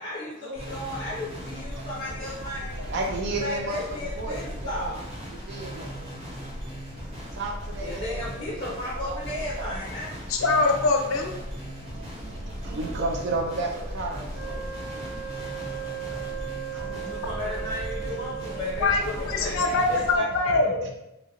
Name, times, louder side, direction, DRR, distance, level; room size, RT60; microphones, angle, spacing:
voice 1, 0.0-2.8 3.4-5.0 7.8-10.2 16.9-20.6, left 1 dB, 25° left, -6 dB, 0.5 m, -35 dB
sound 1, 0.6-20.2, equal, 30° right, 0.7 m, -37 dB
voice 2, 1.7-2.5 2.8-5.0 5.3-6.3 6.6-9.2 9.6-9.8 11.4-17.7 18.1-18.7 19.0-21.0, right 2 dB, 55° right, 1 dB, 0.3 m, -36 dB
voice 3, 10.3-11.3 18.8-20.9, left 3 dB, 75° left, 3 dB, 0.5 m, -23 dB
Wind instrument woodwind instrument, 14.3-18.9, right 10 dB, 80° right, 0.8 m, -37 dB
2.9 x 2.5 x 2.7 m, 0.89 s
head